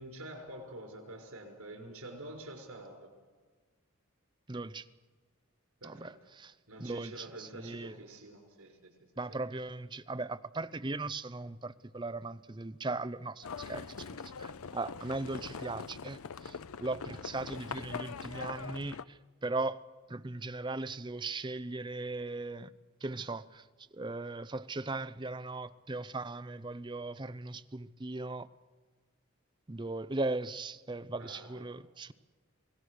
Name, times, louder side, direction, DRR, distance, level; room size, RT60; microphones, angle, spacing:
voice 1, 0.0-3.1 5.8-6.1 6.7-8.9 31.2-31.7, right 1 dB, 90° right, 6.0 m, -47 dB
voice 2, 4.5-4.9 5.8-8.0 9.2-22.7 23.0-23.7 23.9-28.5 29.7-32.1, right 2 dB, 20° right, 0.6 m, -38 dB
Livestock farm animals working animals, 13.4-19.0, left 5 dB, 85° left, 0.6 m, -42 dB
27.5 x 18.5 x 6.5 m
head